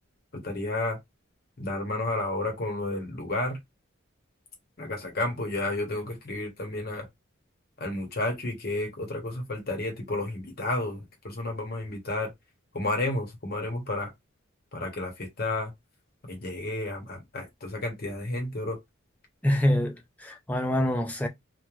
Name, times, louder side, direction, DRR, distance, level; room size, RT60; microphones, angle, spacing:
voice 1, 0.3-1.0 1.6-3.6 4.8-7.1 7.8-12.3 12.7-14.1 14.7-15.7 16.2-18.8, left 2 dB, 45° left, 0.8 m, -31 dB
voice 2, 19.4-21.3, left 1 dB, 5° left, 0.3 m, -25 dB
3.0 x 2.1 x 2.3 m
head